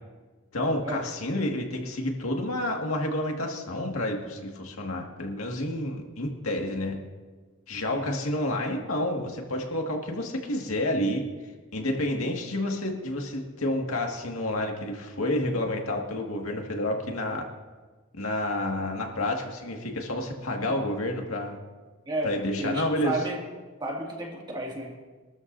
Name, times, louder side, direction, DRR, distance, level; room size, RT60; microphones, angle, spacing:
voice 1, 0.5-7.0 7.7-11.2 11.7-17.5 18.2-21.6 22.2-23.2, left 1 dB, 80° left, 1 dB, 2.0 m, -29 dB
voice 2, 22.1-23.4 23.8-25.0, right 1 dB, 20° right, -1 dB, 2.2 m, -32 dB
25.0 x 13.0 x 2.7 m, 1.4 s
head